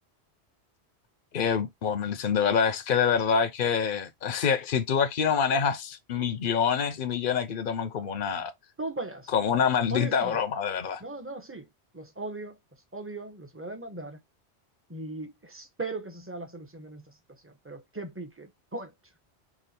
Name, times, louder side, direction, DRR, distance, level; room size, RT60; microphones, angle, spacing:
voice 1, 1.3-8.5 9.3-11.0, left 7 dB, 55° left, 0.8 m, -26 dB
voice 2, 8.8-9.3 9.9-10.4 11.0-11.7 11.9-12.6 12.9-14.2 14.9-18.9, right 2 dB, 15° right, 0.9 m, -38 dB
5.0 x 2.4 x 4.2 m
omnidirectional pair, 1.1 m